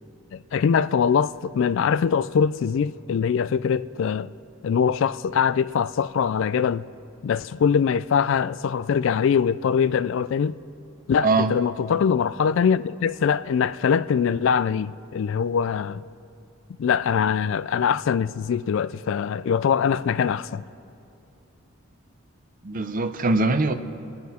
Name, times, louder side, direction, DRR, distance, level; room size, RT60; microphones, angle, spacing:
voice 1, 0.3-4.3 4.6-6.8 7.2-10.6 11.1-16.0 16.8-20.6, left 7 dB, 60° left, 0.3 m, -23 dB
voice 2, 22.6-23.7, right 3 dB, 40° right, 0.6 m, -22 dB
28.0 x 9.6 x 4.3 m
head